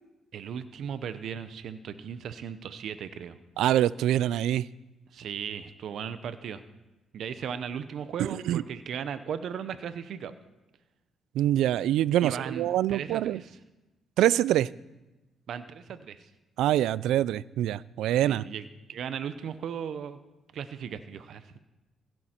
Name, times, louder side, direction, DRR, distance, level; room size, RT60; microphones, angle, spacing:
voice 1, 0.3-3.4 5.1-6.6 7.1-10.3 12.2-13.6 15.5-16.3 18.3-18.6 18.9-20.2 20.5-21.6, right 8 dB, 70° right, 12 dB, 0.8 m, -37 dB
voice 2, 3.6-4.7 8.5-8.6 11.3-13.4 14.2-14.7 16.6-18.4, right 12 dB, 85° right, 21 dB, 0.3 m, -25 dB
16.5 x 10.5 x 4.4 m, 1.0 s
cardioid pair, 90°, 0 cm